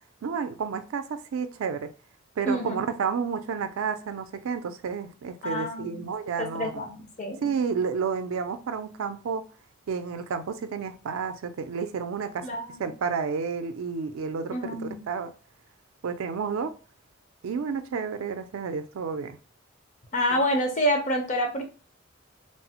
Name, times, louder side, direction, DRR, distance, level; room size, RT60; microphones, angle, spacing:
voice 1, 0.2-1.9 2.4-6.8 7.4-9.4 9.9-12.5 12.8-15.3 16.0-16.7 17.4-19.4, right 6 dB, 75° right, 0.4 m, -31 dB
voice 2, 2.5-2.8 5.4-6.1 6.4-7.5 12.4-12.9 14.5-15.0 20.1-21.7, equal, 35° left, 0.6 m, -28 dB
3.2 x 2.0 x 2.8 m
head